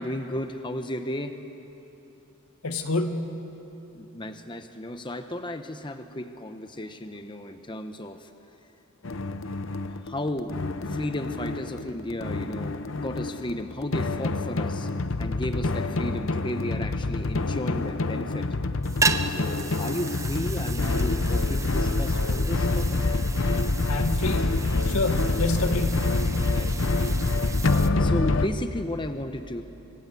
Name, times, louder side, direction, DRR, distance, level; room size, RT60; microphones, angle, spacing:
voice 1, 0.0-1.4 3.9-8.3 9.9-10.6 10.8-14.9 15.2-18.5 19.3-23.0 26.5-27.0 27.7-29.6, left 1 dB, 20° left, 8 dB, 0.9 m, -34 dB
voice 2, 2.6-3.4 23.8-26.2, left 2 dB, 85° left, 6 dB, 1.8 m, -28 dB
sound 1, 9.0-28.5, left 2 dB, 60° left, 0.8 m, -26 dB
sound 2, 18.8-27.9, right 4 dB, 15° right, 0.7 m, -34 dB
25.0 x 23.0 x 8.3 m, 3.0 s
head